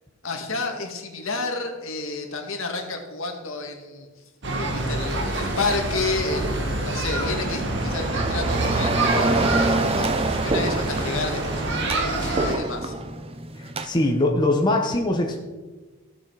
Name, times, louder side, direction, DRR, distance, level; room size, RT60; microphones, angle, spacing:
voice 1, 0.2-4.1 4.5-12.9, left 3 dB, 65° left, 3 dB, 2.0 m, -30 dB
sound 1, 4.4-12.6, right 2 dB, 55° right, 1.8 m, -27 dB
sound 2, 7.2-13.9, right 2 dB, 25° right, 0.6 m, -26 dB
voice 2, 13.6-15.4, left 1 dB, 20° left, 1 dB, 1.1 m, -22 dB
15.5 x 7.4 x 4.9 m, 1.3 s
head